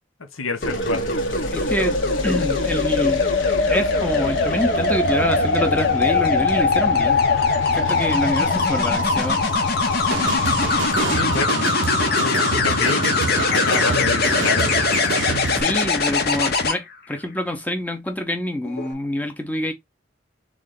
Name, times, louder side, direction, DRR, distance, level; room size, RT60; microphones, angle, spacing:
voice 1, 0.3-1.2 11.0-11.7 12.2-14.9 15.5-15.8, left 3 dB, 90° left, 1.0 m, -28 dB
sound 1, 0.6-11.1, left 3 dB, 70° left, 1.2 m, -37 dB
sound 2, 0.6-16.7 18.6-18.9, left 3 dB, 50° left, 0.9 m, -21 dB
voice 2, 1.5-3.2 3.7-7.2 7.7-9.4 15.5-19.7, left 1 dB, 10° left, 0.8 m, -26 dB
sound 3, 10.1-15.6, right 5 dB, 70° right, 0.5 m, -27 dB
3.7 x 3.2 x 3.8 m
head